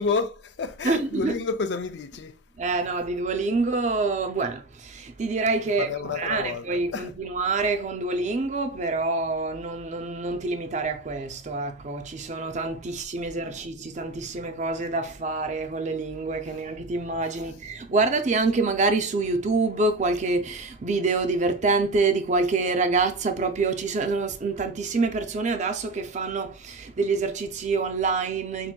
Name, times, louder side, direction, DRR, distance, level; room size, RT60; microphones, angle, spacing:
voice 1, 0.0-2.4 5.6-6.7 6.9-7.1, left 4 dB, 75° left, 0.4 m, -29 dB
voice 2, 0.8-1.3 2.6-28.7, right 3 dB, 40° right, 0.5 m, -26 dB
5.6 x 2.6 x 2.2 m
head